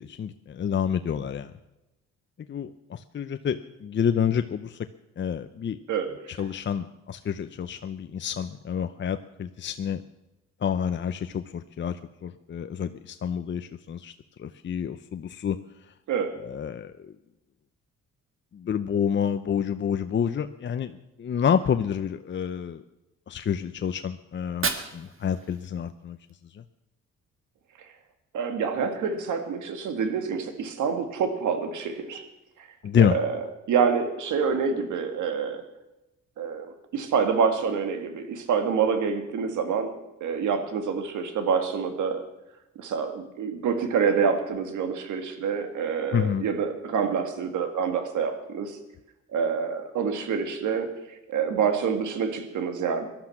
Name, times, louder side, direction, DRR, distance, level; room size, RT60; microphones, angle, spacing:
voice 1, 0.0-1.5 2.5-4.8 5.2-5.8 6.3-10.0 10.6-14.1 14.4-15.6 16.4-16.9 18.5-22.8 23.3-26.2 26.5-26.6 32.8-33.2 46.1-46.5, left 8 dB, 40° left, 9 dB, 0.7 m, -28 dB
voice 2, 5.9-6.4 16.1-16.3 28.3-32.3 32.6-32.7 33.0-35.6 36.4-39.9 40.2-42.2 42.8-48.8 49.3-53.1, right 6 dB, 75° right, 7 dB, 2.2 m, -27 dB
Fire, 24.3-26.3, right 5 dB, 45° right, 1.7 m, -34 dB
18.0 x 12.0 x 5.9 m, 0.95 s
cardioid pair, 90°, 30 cm